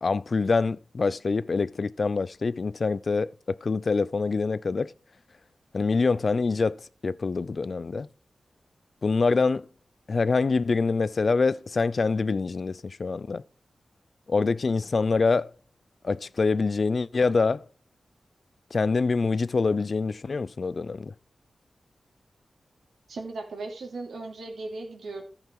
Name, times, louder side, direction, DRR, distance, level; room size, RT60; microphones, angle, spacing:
voice 1, 0.0-4.9 5.7-8.1 9.0-9.7 10.1-13.4 14.3-15.5 16.0-17.6 18.7-21.1, left 4 dB, 55° left, 0.5 m, -25 dB
voice 2, 23.1-25.2, right 3 dB, 90° right, 3.3 m, -37 dB
14.0 x 5.8 x 4.6 m
cardioid pair, 65°, 0 cm